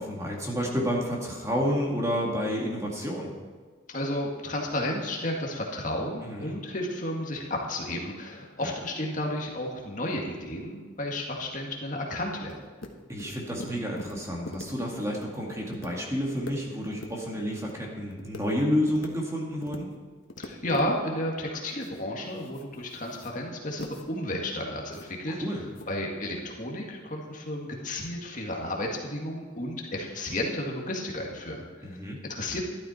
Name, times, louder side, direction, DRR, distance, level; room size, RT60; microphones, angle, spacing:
voice 1, 0.0-3.3 6.2-6.6 8.6-8.7 13.1-19.9 25.3-25.6 31.8-32.2, equal, 15° right, -1 dB, 2.0 m, -30 dB
voice 2, 3.9-12.5 20.4-25.4 25.9-32.0 32.2-32.7, left 1 dB, 40° left, -1 dB, 1.9 m, -32 dB
sound 1, 12.5-12.9 13.2-14.1 14.5-14.7 14.9-15.2 15.6-15.9 16.2-16.5 16.8-17.1 17.4-17.7 18.1-18.4 18.8-19.1 19.5-19.8 20.2-20.9 21.6-22.0 22.3-23.4 23.8-24.1 24.5-24.6 24.9-25.1 25.7-25.9, left 2 dB, 85° left, 1.4 m, -42 dB
13.0 x 12.0 x 4.4 m, 1.5 s
head